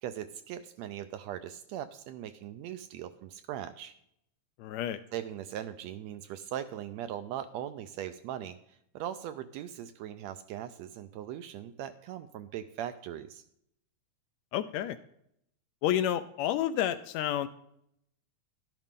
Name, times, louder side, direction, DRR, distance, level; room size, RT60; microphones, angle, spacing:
voice 1, 0.0-3.9 5.1-13.4, right 11 dB, 80° right, 10 dB, 1.6 m, -40 dB
voice 2, 4.6-5.0 14.5-15.0 15.8-17.5, left 11 dB, 80° left, 11 dB, 1.6 m, -30 dB
12.0 x 10.5 x 3.7 m, 0.74 s
omnidirectional pair, 3.4 m